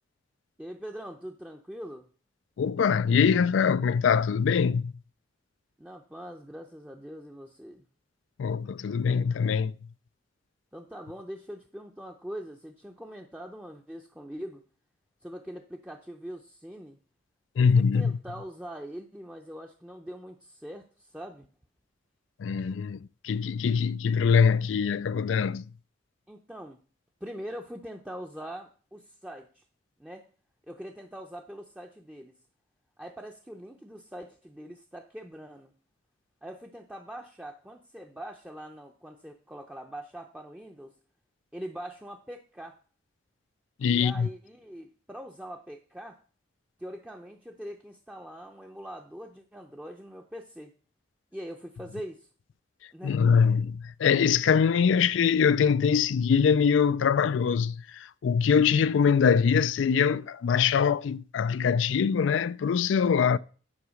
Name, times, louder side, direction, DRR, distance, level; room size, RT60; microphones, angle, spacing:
voice 1, 0.6-2.1 5.8-7.8 10.7-14.6 15.2-17.0 17.6-21.5 26.3-26.8 27.2-29.6 30.0-30.2 30.7-32.3 33.0-35.7 36.4-40.9 41.5-42.8 43.9-46.2 46.8-50.7 51.3-52.3 52.9-53.2, equal, 5° right, 0.6 m, -42 dB
voice 2, 2.6-4.9 8.4-9.7 17.6-18.1 22.4-25.6 43.8-44.3 53.0-63.4, left 6 dB, 85° left, 0.4 m, -23 dB
9.9 x 4.7 x 6.3 m
head